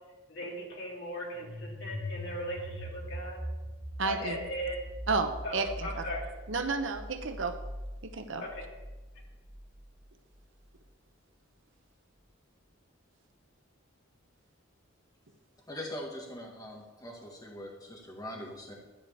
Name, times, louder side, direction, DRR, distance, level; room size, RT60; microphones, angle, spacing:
voice 1, 0.3-3.4 4.0-4.8 5.4-6.2 8.4-8.6, equal, 60° left, -3 dB, 3.7 m, -38 dB
sound 1, 1.3-10.0, equal, 20° right, 3.0 m, -42 dB
voice 2, 4.0-4.4 5.1-5.9 6.5-7.6 8.0-8.4, right 4 dB, 65° right, 7 dB, 1.0 m, -31 dB
voice 3, 15.7-18.7, left 1 dB, 20° left, 0 dB, 2.0 m, -42 dB
13.0 x 5.0 x 8.5 m, 1.2 s
head